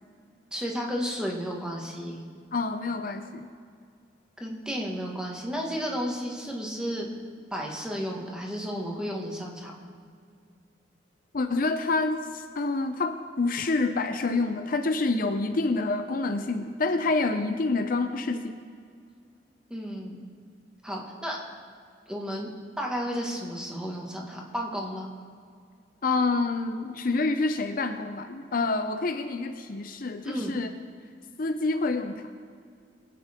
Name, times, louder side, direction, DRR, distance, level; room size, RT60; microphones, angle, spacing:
voice 1, 0.5-2.2 4.4-7.1 7.5-9.7 19.7-20.2 20.8-21.4 22.1-22.5 22.8-25.1 30.2-30.6, equal, 5° right, -2 dB, 1.8 m, -33 dB
voice 2, 2.5-3.5 11.3-18.6 26.0-30.7 31.4-32.3, left 3 dB, 50° left, 7 dB, 0.6 m, -27 dB
22.5 x 9.4 x 3.7 m, 2.3 s
head